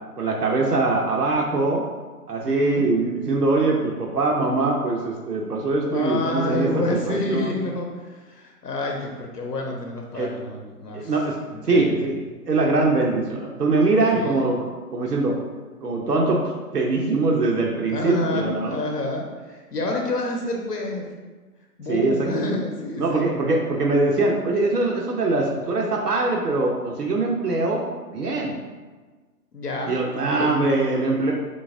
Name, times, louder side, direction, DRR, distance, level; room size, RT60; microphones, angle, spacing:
voice 1, 0.2-1.8 2.3-7.5 10.1-10.3 10.9-11.4 11.6-12.1 12.5-14.6 14.9-15.4 15.8-16.4 16.7-18.8 21.9-22.3 23.0-28.6 29.9-31.3, right 3 dB, 90° right, -1 dB, 0.7 m, -22 dB
voice 2, 2.5-2.9 5.9-11.1 11.5-11.9 14.1-14.5 17.9-21.1 21.8-23.3 29.5-30.6, left 2 dB, 85° left, 1 dB, 0.8 m, -28 dB
4.0 x 3.8 x 2.5 m, 1.3 s
figure-of-eight pair, 135°, 46 cm